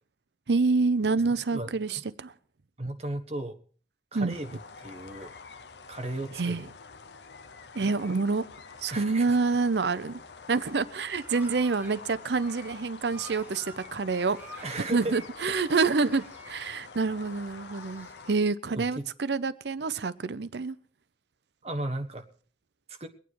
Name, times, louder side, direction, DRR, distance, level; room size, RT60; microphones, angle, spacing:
voice 1, 0.5-2.3 4.1-4.4 6.3-6.6 7.7-8.5 8.8-10.2 10.5-14.6 14.9-20.8, right 4 dB, 80° right, 15 dB, 0.7 m, -27 dB
voice 2, 1.5-2.0 2.8-3.6 4.1-5.3 5.9-6.7 8.9-9.4 14.6-15.1 15.5-15.6 18.7-19.1 21.6-22.3 22.9-23.1, right 1 dB, 35° right, 5 dB, 1.3 m, -36 dB
sound 1, 4.3-18.4, left 4 dB, 80° left, 0.8 m, -47 dB
sound 2, 10.9-12.0 12.3-15.3 15.6-16.6 17.2-18.3, right 1 dB, 10° right, 1.5 m, -49 dB
23.0 x 9.2 x 4.7 m, 0.42 s
head